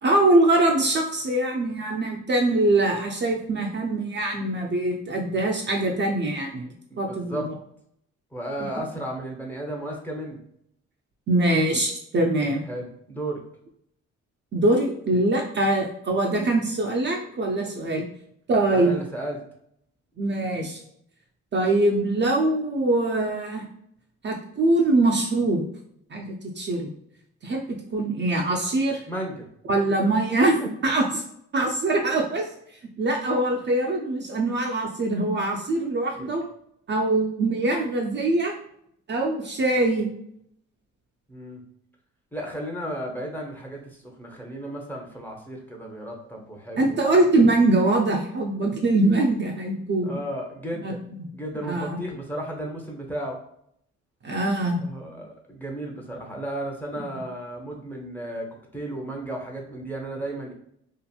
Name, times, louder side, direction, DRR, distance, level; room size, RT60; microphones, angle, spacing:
voice 1, 0.0-6.7 7.0-7.5 11.3-12.6 14.5-18.0 18.5-18.9 20.2-20.8 21.5-23.6 24.2-25.6 26.1-26.9 27.4-29.1 29.7-30.6 30.8-31.2 31.5-32.4 33.0-36.4 36.9-38.5 39.1-40.1 46.8-50.2 50.7-51.3 51.6-52.0 54.2-54.8, right 2 dB, 40° right, 0 dB, 0.5 m, -23 dB
voice 2, 6.9-7.5 8.3-10.4 12.7-13.4 18.7-19.4 29.1-29.5 30.6-30.7 36.2-36.3 41.3-41.6 42.3-47.0 50.0-51.0 51.3-53.4 54.8-58.5 58.7-60.5, right 1 dB, 5° left, -1 dB, 0.7 m, -34 dB
2.8 x 2.5 x 2.3 m, 0.72 s
cardioid pair, 90°, 30 cm